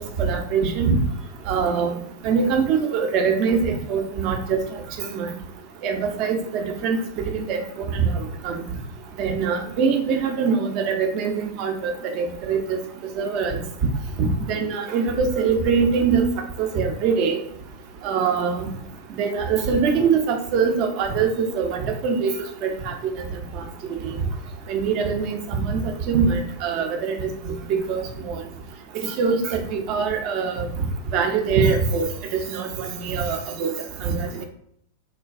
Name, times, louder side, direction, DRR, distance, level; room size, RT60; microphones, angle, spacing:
voice 1, 0.2-1.0 1.5-1.9 2.2-4.6 5.0-5.3 5.8-7.0 7.3-7.6 7.9-8.6 9.2-12.8 13.2-13.6 14.2-16.2 16.6-17.4 18.0-18.7 19.1-22.3 22.6-22.9 23.6-23.7 24.0-24.1 24.7-25.8 26.1-28.4 29.2-30.7 31.1-33.7 34.0-34.4, right 5 dB, 40° right, 3 dB, 0.6 m, -23 dB
3.2 x 2.2 x 2.4 m, 0.68 s
figure-of-eight pair, 90°, 0 cm